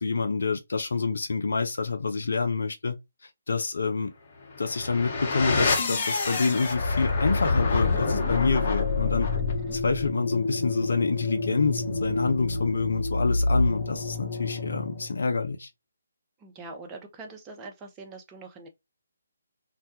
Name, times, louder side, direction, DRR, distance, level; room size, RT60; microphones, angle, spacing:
voice 1, 0.0-3.0 3.2-4.1 4.6-9.3 9.7-15.7, left 4 dB, 60° left, 0.3 m, -27 dB
sound 1, 4.5-15.2, left 3 dB, 40° left, 0.8 m, -27 dB
voice 2, 16.4-18.7, right 3 dB, 15° right, 0.5 m, -43 dB
2.2 x 2.1 x 2.7 m
figure-of-eight pair, 145°, 0 cm